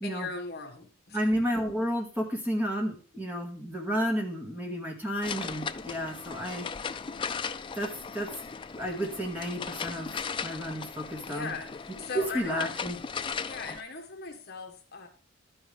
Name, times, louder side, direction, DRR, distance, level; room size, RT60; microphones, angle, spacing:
voice 1, 0.0-1.3 11.2-12.7 13.4-15.1, left 4 dB, 50° left, 4 dB, 1.6 m, -39 dB
voice 2, 1.1-6.7 7.8-8.3 8.8-11.5 12.3-13.0, equal, 10° right, 1 dB, 1.9 m, -32 dB
sound 1, 5.2-13.8, left 6 dB, 25° left, 0.4 m, -37 dB
12.5 x 9.1 x 3.4 m, 0.37 s
head